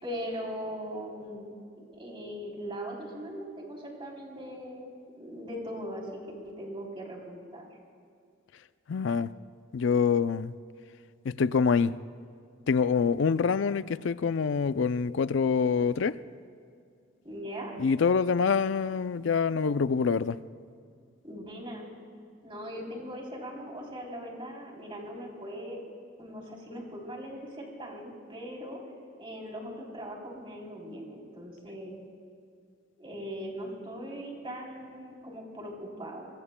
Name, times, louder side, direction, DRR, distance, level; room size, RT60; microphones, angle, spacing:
voice 1, 0.0-4.9 5.2-7.7 17.2-17.7 21.2-21.8 22.4-25.8 26.2-28.8 29.2-31.9 33.0-36.3, equal, 25° right, 3.4 m, -40 dB
voice 2, 8.9-9.3 9.7-10.5 11.2-11.9 12.7-16.2 17.8-20.4, left 5 dB, 65° left, 0.4 m, -25 dB
24.5 x 22.5 x 2.2 m
head